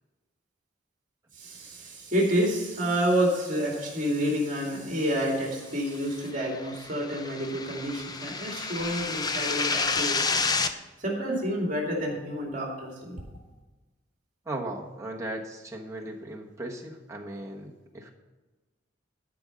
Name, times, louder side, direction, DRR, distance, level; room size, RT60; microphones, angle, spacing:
voice 1, 1.4-10.4 11.0-13.2, equal, 40° right, -1 dB, 2.3 m, -29 dB
sound 1, 6.3-10.7, left 4 dB, 20° left, 0.5 m, -29 dB
voice 2, 14.4-18.1, right 1 dB, 15° right, 0 dB, 1.2 m, -37 dB
12.5 x 5.3 x 6.3 m, 1.2 s
head